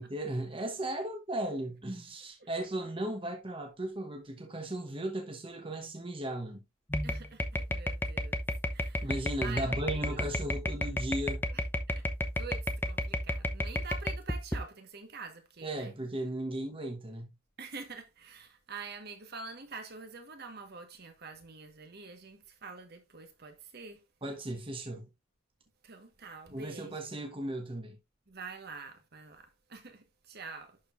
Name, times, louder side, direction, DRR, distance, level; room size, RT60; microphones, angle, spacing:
voice 1, 0.0-6.6 9.0-11.4 15.6-17.3 24.2-25.1 26.5-28.0, right 1 dB, 25° right, 1.0 m, -36 dB
sound 1, 6.9-14.6, left 1 dB, 10° left, 0.7 m, -32 dB
voice 2, 7.0-8.4 8.7-9.1 9.4-10.3 11.5-12.1 12.3-15.9 17.6-24.0 25.8-27.0 28.3-30.8, right 4 dB, 50° right, 1.4 m, -46 dB
11.0 x 4.6 x 2.5 m
head